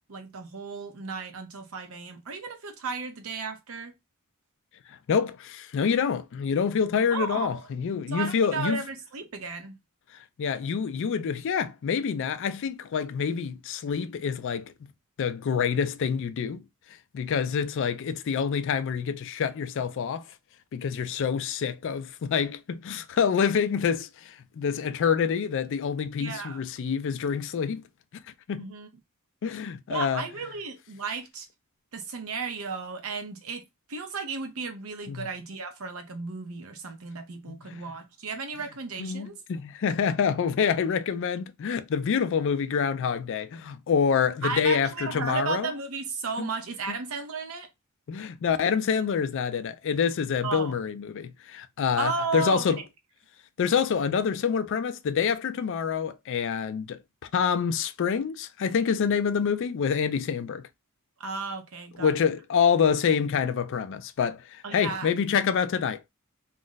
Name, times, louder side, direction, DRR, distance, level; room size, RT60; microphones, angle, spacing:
voice 1, 0.1-3.9 7.1-7.7 8.1-9.8 26.2-26.6 28.6-28.9 29.9-31.5 31.9-33.6 33.9-39.4 44.4-47.7 50.4-50.8 52.0-52.7 61.2-62.1 64.6-65.1, right 4 dB, 65° right, 0.6 m, -34 dB
voice 2, 4.9-8.8 10.4-14.7 15.2-16.6 17.1-20.2 20.7-27.8 28.5-28.7 29.4-30.2 35.1-35.3 37.5-37.8 39.0-45.7 46.4-46.5 48.1-52.8 53.6-57.0 57.3-60.6 62.0-66.0, left 6 dB, 55° left, 0.3 m, -27 dB
2.4 x 2.1 x 3.8 m
head